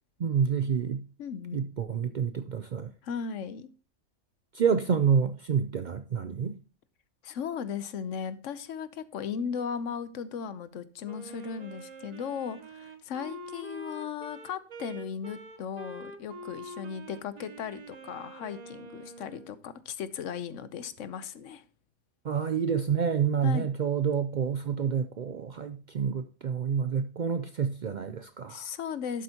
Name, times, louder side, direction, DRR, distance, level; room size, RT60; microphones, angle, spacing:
voice 1, 0.2-1.1 1.5-2.9 4.5-6.6 22.2-28.7, right 7 dB, 55° right, 0.5 m, -28 dB
voice 2, 1.2-1.7 3.0-3.7 7.2-21.6 23.4-23.7 28.5-29.2, left 7 dB, 80° left, 1.1 m, -37 dB
Wind instrument woodwind instrument, 11.1-19.5, right 2 dB, 40° right, 0.9 m, -45 dB
11.5 x 7.9 x 2.8 m
omnidirectional pair, 1.3 m